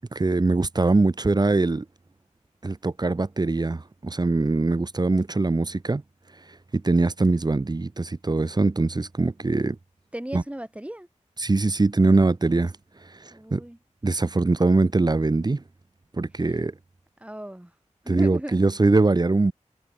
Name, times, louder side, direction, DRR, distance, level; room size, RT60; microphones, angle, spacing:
voice 1, 0.1-1.8 2.6-6.0 6.7-9.8 10.3-10.4 11.4-12.7 13.2-13.6 14.0-15.6 16.1-16.7 18.1-19.5, right 3 dB, 35° right, 0.8 m, -22 dB
voice 2, 10.1-11.1 13.3-13.8 16.4-16.5 17.2-17.7 18.0-18.6, right 1 dB, 10° right, 6.6 m, -36 dB
wide cardioid pair, 85°, 13 cm